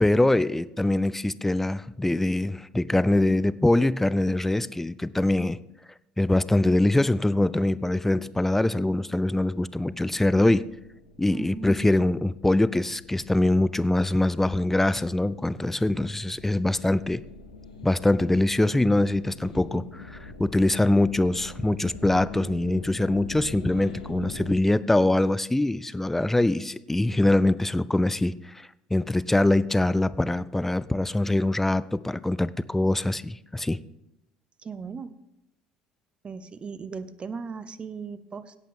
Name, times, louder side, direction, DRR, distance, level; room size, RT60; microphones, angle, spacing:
voice 1, 0.0-5.6 6.2-10.6 11.2-17.2 17.8-33.8, left 1 dB, 10° left, 17 dB, 0.4 m, -23 dB
sound 1, 9.0-24.6, left 3 dB, 85° left, 1.1 m, -45 dB
voice 2, 11.3-12.0 34.6-35.1 36.2-38.5, right 5 dB, 30° right, 15 dB, 0.7 m, -37 dB
17.0 x 8.4 x 3.7 m, 0.88 s
figure-of-eight pair, 60°, 4 cm